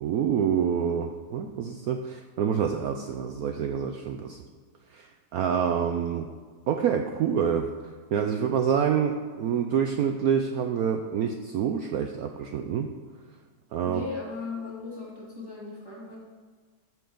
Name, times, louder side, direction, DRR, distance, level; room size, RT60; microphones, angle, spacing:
voice 1, 0.0-4.4 4.9-6.3 6.7-7.7 8.1-12.9 13.7-14.1, right 7 dB, 80° right, 5 dB, 0.8 m, -27 dB
voice 2, 13.8-16.2, left 3 dB, 10° right, -6 dB, 2.1 m, -37 dB
13.5 x 4.6 x 5.1 m, 1.5 s
omnidirectional pair, 2.1 m